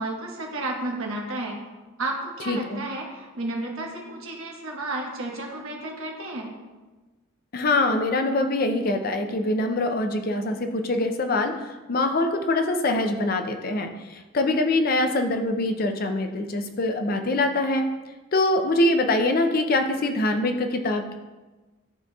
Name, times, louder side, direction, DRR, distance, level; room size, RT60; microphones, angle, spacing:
voice 1, 0.0-1.6 2.0-6.6, right 2 dB, 75° right, 0 dB, 1.2 m, -32 dB
voice 2, 2.5-2.8 7.5-17.9 18.3-21.1, left 2 dB, 45° left, 6 dB, 0.5 m, -24 dB
11.0 x 4.0 x 2.3 m, 1.2 s
head